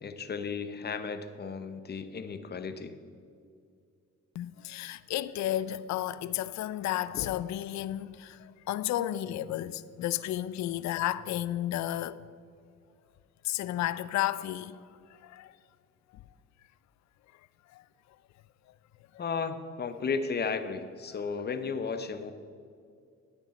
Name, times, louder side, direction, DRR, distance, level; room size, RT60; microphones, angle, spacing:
voice 1, 0.0-3.0 19.2-22.3, left 5 dB, 35° left, 0.8 m, -34 dB
voice 2, 4.3-12.2 13.4-14.8 15.1-15.6 16.1-16.2 17.7-17.8, left 13 dB, 65° left, 0.4 m, -32 dB
10.5 x 8.8 x 4.2 m
cardioid pair, 90°, 30 cm